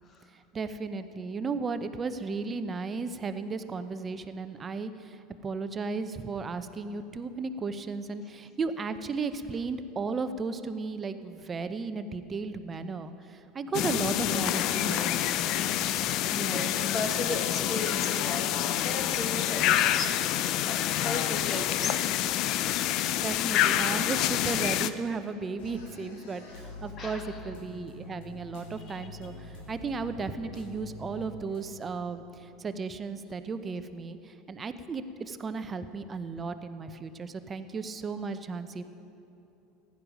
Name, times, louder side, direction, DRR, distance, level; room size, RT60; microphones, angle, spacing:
voice 1, 0.3-15.2 16.0-16.7 23.2-38.8, right 4 dB, 30° right, 10 dB, 0.8 m, -35 dB
sound 1, 13.7-24.9, left 12 dB, 55° left, 0.5 m, -27 dB
voice 2, 14.2-14.8 16.4-22.0 27.0-27.4, left 2 dB, 35° left, 4 dB, 1.5 m, -36 dB
sound 2, 25.6-31.7, left 2 dB, 70° left, 1.6 m, -45 dB
15.5 x 10.5 x 5.2 m, 2.9 s
hypercardioid pair, 85°, 0 cm